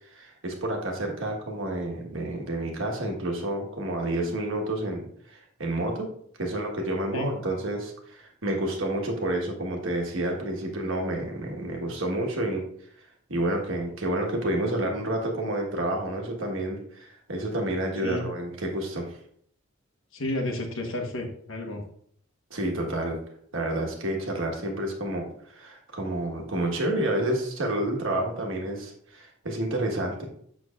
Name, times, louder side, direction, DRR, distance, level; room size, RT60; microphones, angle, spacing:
voice 1, 0.1-6.1 6.4-12.6 13.3-19.2 22.5-23.2 23.5-30.2, right 1 dB, 65° right, 1 dB, 1.4 m, -29 dB
voice 2, 20.1-21.8, left 1 dB, 65° left, 2 dB, 1.2 m, -31 dB
6.5 x 6.3 x 2.4 m, 0.65 s
head